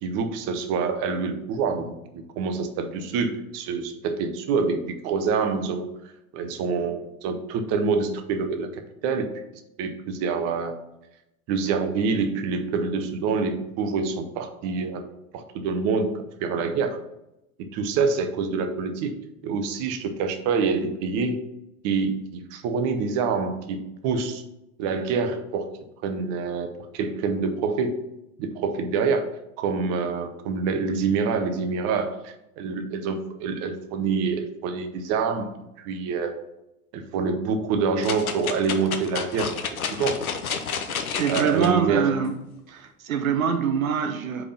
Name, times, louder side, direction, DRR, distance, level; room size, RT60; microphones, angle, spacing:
voice 1, 0.0-5.9 6.3-9.3 9.8-10.7 11.5-15.0 15.3-17.0 17.7-19.1 19.4-21.4 21.8-24.4 24.8-25.7 26.0-26.7 26.9-28.0 28.4-29.3 29.6-35.5 35.8-36.3 36.9-39.5 40.0-40.2 41.3-42.2, right 5 dB, 35° right, 6 dB, 0.7 m, -26 dB
sound 1, 38.0-41.7 42.2-42.3, left 6 dB, 75° left, 0.7 m, -30 dB
voice 2, 41.1-42.3 42.7-44.4, right 7 dB, 70° right, 6 dB, 0.6 m, -24 dB
5.0 x 3.6 x 5.4 m, 0.89 s
figure-of-eight pair, 80°, 43 cm